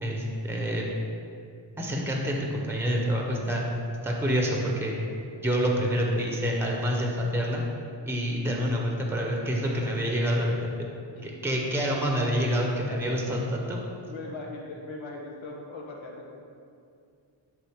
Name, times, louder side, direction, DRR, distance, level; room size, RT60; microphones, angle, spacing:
voice 1, 0.0-0.9 1.8-3.6 4.0-4.9 5.4-7.6 8.1-10.7 11.2-13.8, equal, 5° right, 0 dB, 0.8 m, -27 dB
voice 2, 12.9-13.7 14.0-16.3, left 2 dB, 85° left, -1 dB, 1.2 m, -41 dB
10.5 x 3.7 x 3.6 m, 2.4 s
wide cardioid pair, 130°, 46 cm